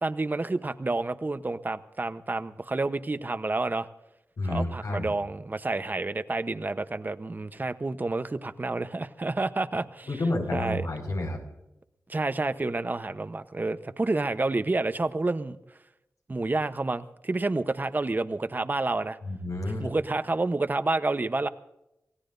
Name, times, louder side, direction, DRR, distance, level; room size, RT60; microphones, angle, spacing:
voice 1, 0.0-3.9 4.5-10.1 10.5-10.9 12.1-15.6 16.3-19.2 19.8-21.5, right 2 dB, 35° right, 11 dB, 0.9 m, -29 dB
voice 2, 4.4-5.1 10.0-11.4 19.2-19.9, left 2 dB, 80° left, 2 dB, 5.3 m, -30 dB
27.0 x 17.5 x 2.7 m, 0.87 s
wide cardioid pair, 85°, 6 cm